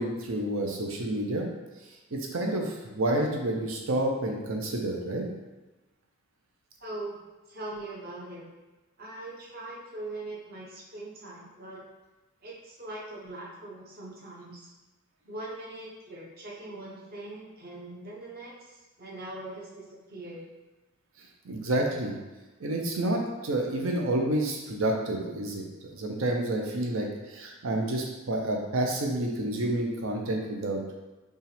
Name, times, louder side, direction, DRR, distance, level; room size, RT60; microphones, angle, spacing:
voice 1, 0.0-1.5 2.1-5.3 21.4-22.1 22.6-25.6 25.9-30.8, right 1 dB, 75° right, 1 dB, 0.8 m, -29 dB
voice 2, 6.8-7.2 7.5-8.4 9.0-11.8 12.4-14.7 15.2-18.5 19.0-20.4, right 2 dB, 45° right, -5 dB, 1.0 m, -41 dB
5.3 x 2.4 x 3.4 m, 1.1 s
head